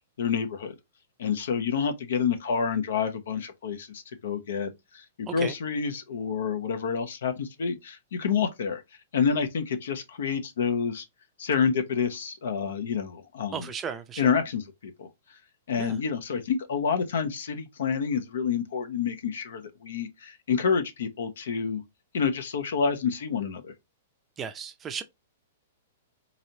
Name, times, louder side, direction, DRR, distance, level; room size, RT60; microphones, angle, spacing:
voice 1, 0.2-0.7 1.2-8.8 9.1-11.0 11.4-13.6 14.2-15.1 15.7-21.8 22.1-23.7, left 6 dB, 75° left, 0.9 m, -28 dB
voice 2, 13.5-14.3 15.8-16.0 24.4-25.0, right 7 dB, 20° right, 0.5 m, -35 dB
4.0 x 3.1 x 2.8 m
hypercardioid pair, 130°, 0 cm